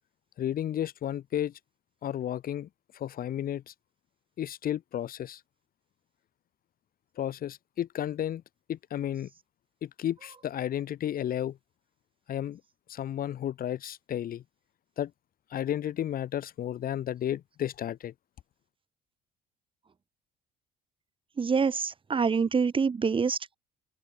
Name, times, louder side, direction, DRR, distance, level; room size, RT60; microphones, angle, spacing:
voice 1, 0.4-1.5 2.0-2.7 2.9-3.7 4.4-5.4 7.2-8.4 8.7-9.3 9.8-11.6 12.3-12.6 12.9-14.4 15.0-15.1 15.5-18.1, left 11 dB, 60° left, 4.8 m, -32 dB
voice 2, 21.4-23.6, right 5 dB, 30° right, 4.9 m, -26 dB
cardioid pair, 110°, 17 cm